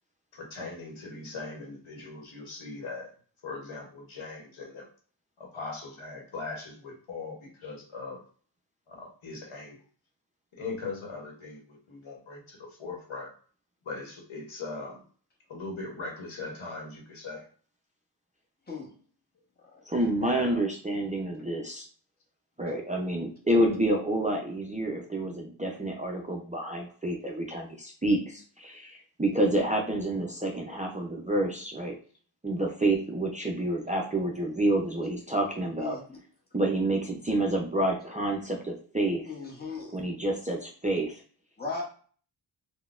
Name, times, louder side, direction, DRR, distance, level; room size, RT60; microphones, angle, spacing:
voice 1, 0.3-3.1 3.4-4.9 5.4-8.2 8.9-9.8 10.5-13.3 13.8-15.0 15.5-17.5 20.2-20.6, left 3 dB, 85° left, 1.0 m, -40 dB
voice 2, 19.9-21.9 22.6-31.9 32.4-36.0 36.5-39.2 39.9-41.2, right 1 dB, 15° right, 0.4 m, -28 dB
voice 3, 39.3-40.0 41.6-41.8, left 4 dB, 20° left, 0.9 m, -37 dB
3.8 x 2.2 x 2.4 m
wide cardioid pair, 110°, 47 cm